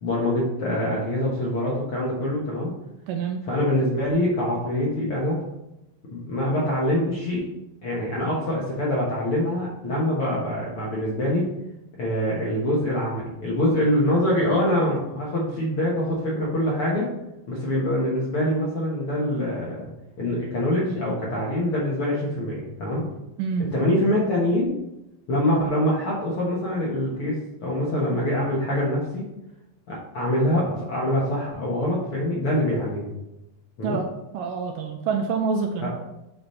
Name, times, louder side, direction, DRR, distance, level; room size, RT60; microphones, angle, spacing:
voice 1, 0.0-2.7 3.5-5.4 6.1-7.4 7.8-11.5 12.0-17.1 17.5-19.9 20.2-23.1 23.7-24.7 25.3-29.3 29.9-33.2 33.8-34.0 35.8-35.9, left 1 dB, 60° left, -5 dB, 1.5 m, -24 dB
voice 2, 3.1-3.4 23.4-23.7 33.8-34.1 34.3-35.9, right 5 dB, 80° right, 4 dB, 2.0 m, -26 dB
8.6 x 4.1 x 4.3 m, 0.92 s
omnidirectional pair, 4.2 m